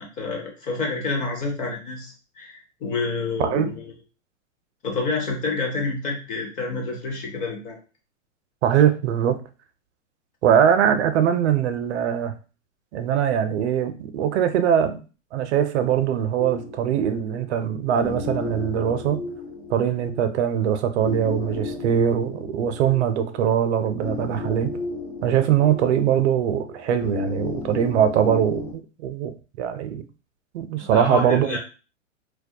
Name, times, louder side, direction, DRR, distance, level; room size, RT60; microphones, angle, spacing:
voice 1, 0.0-3.9 4.8-7.8 30.8-31.6, left 3 dB, 20° left, 0.5 m, -28 dB
voice 2, 3.4-3.7 8.6-9.4 10.4-12.3 12.9-15.0 15.3-19.2 19.7-24.7 25.2-30.0 30.5-31.6, right 9 dB, 60° right, 0.5 m, -22 dB
sound 1, 16.4-28.7, left 3 dB, 60° left, 1.0 m, -35 dB
2.2 x 2.1 x 2.6 m
hypercardioid pair, 120°, 39 cm